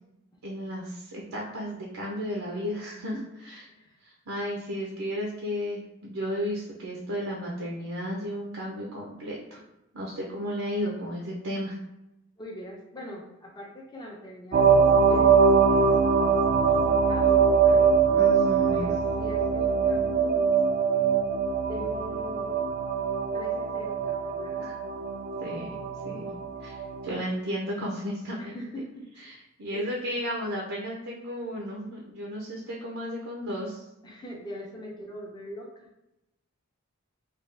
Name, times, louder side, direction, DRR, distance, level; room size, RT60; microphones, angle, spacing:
voice 1, 0.4-3.1 3.4-3.6 4.0-9.6 9.9-11.8 18.1-18.8 24.6-24.7 25.4-25.7 26.0-26.2 26.6-28.6 29.3-33.8, equal, 80° right, -3 dB, 0.6 m, -33 dB
voice 2, 2.9-3.2 3.7-4.0 12.4-15.3 15.6-15.9 16.7-17.9 18.7-20.5 21.5-22.5 23.3-24.7 28.4-29.4 29.7-29.9 34.0-35.9, equal, 20° left, -2 dB, 0.5 m, -42 dB
sound 1, 14.5-27.1, right 5 dB, 45° right, 0.3 m, -23 dB
3.4 x 2.3 x 3.3 m, 0.89 s
head